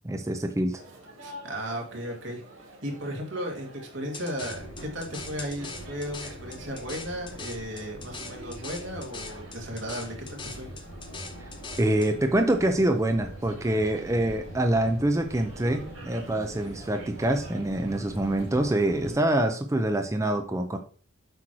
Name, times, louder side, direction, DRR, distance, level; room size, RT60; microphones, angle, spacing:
voice 1, 0.0-0.8 11.8-20.8, right 1 dB, 15° right, 5 dB, 0.5 m, -25 dB
sound 1, 0.7-19.3, right 1 dB, 90° right, 2.6 m, -48 dB
voice 2, 1.2-2.4 2.8-10.7, equal, 65° right, 1 dB, 2.1 m, -35 dB
sound 2, 4.1-12.1, left 4 dB, 25° left, 0.8 m, -42 dB
sound 3, 4.4-19.1, equal, 75° left, 2.1 m, -44 dB
7.8 x 3.1 x 6.1 m, 0.42 s
head